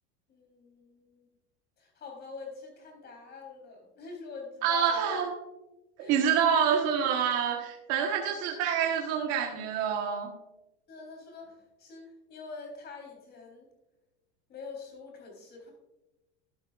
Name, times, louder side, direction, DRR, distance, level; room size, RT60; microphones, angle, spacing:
voice 1, 0.3-1.3 1.8-5.1 6.0-6.2 8.3-8.4 10.9-13.7 14.5-15.7, left 4 dB, 30° left, 0 dB, 3.7 m, -45 dB
voice 2, 4.6-5.3 6.1-10.3, right 7 dB, 50° right, 1 dB, 1.3 m, -27 dB
12.5 x 11.5 x 2.4 m, 0.98 s
supercardioid pair, 155°, 34 cm